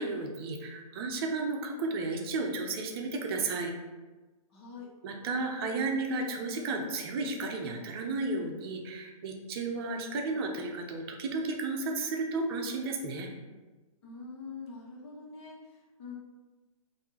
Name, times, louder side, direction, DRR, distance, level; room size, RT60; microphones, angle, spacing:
voice 1, 0.0-3.7 5.0-13.3, right 3 dB, 40° right, 2 dB, 0.7 m, -33 dB
voice 2, 4.5-4.9 14.0-16.2, left 4 dB, 45° left, -3 dB, 1.4 m, -45 dB
5.8 x 2.7 x 2.9 m, 1.2 s
hypercardioid pair, 140°, 19 cm